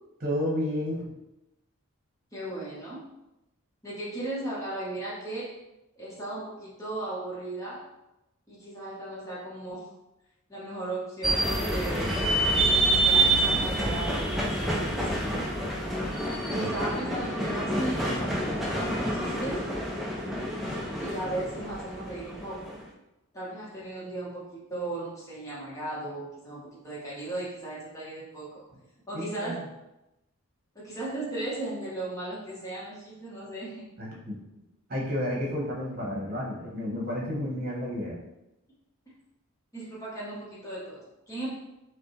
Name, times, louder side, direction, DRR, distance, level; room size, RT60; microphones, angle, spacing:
voice 1, 0.2-1.1 16.5-16.7 29.1-29.7 34.0-34.4 34.9-38.2, left 1 dB, 45° right, -4 dB, 1.1 m, -31 dB
voice 2, 2.3-3.1 3.8-5.6 6.0-7.9 8.5-9.9 10.5-12.2 12.7-15.2 16.5-19.7 21.0-22.8 23.3-28.6 29.1-29.6 30.7-33.8 39.7-41.6, right 2 dB, 15° left, -7 dB, 1.0 m, -36 dB
sound 1, 11.2-22.8, right 2 dB, ahead, 0.4 m, -27 dB
5.1 x 2.2 x 3.1 m, 0.92 s
head